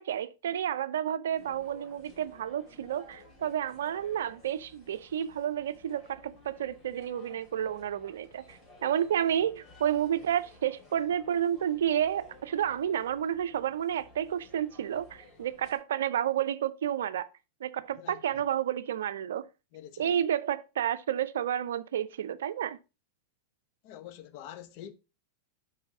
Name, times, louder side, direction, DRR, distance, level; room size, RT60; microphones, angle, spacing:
voice 1, 0.0-17.3 17.6-19.4 20.0-22.8, right 10 dB, 75° right, 0.4 m, -31 dB
sound 1, 1.3-15.8, left 2 dB, 30° left, 2.5 m, -56 dB
voice 2, 18.0-18.4 19.7-20.2 23.8-24.9, left 11 dB, 50° left, 0.7 m, -46 dB
5.4 x 4.0 x 4.6 m
hypercardioid pair, 105°, 0 cm